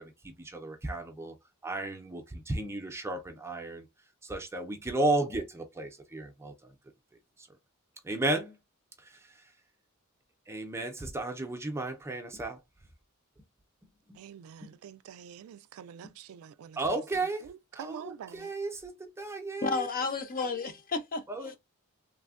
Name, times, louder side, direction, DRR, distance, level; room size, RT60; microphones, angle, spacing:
voice 1, 0.0-1.3 1.6-3.8 4.2-6.7 8.0-8.6 9.0-9.3 10.5-12.6 14.1-14.2 16.8-17.5 17.7-19.9 21.3-21.5, right 2 dB, 10° right, 0.5 m, -34 dB
voice 2, 14.1-17.0 17.4-18.5, right 8 dB, 80° right, 0.3 m, -46 dB
voice 3, 19.6-21.6, left 4 dB, 40° left, 0.6 m, -32 dB
3.2 x 2.1 x 2.3 m
head